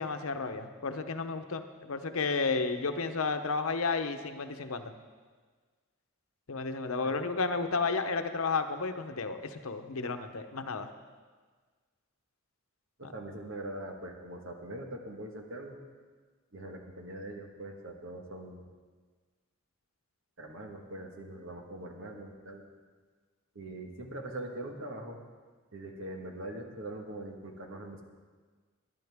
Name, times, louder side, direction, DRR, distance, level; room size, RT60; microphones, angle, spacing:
voice 1, 0.0-4.9 6.5-10.9 13.0-13.1, left 4 dB, 80° left, 8 dB, 0.9 m, -32 dB
voice 2, 13.0-15.8 16.5-18.6 20.4-22.6 23.5-25.2 25.7-28.0, right 1 dB, 65° right, 3 dB, 1.6 m, -42 dB
20.0 x 10.5 x 3.6 m, 1.5 s
head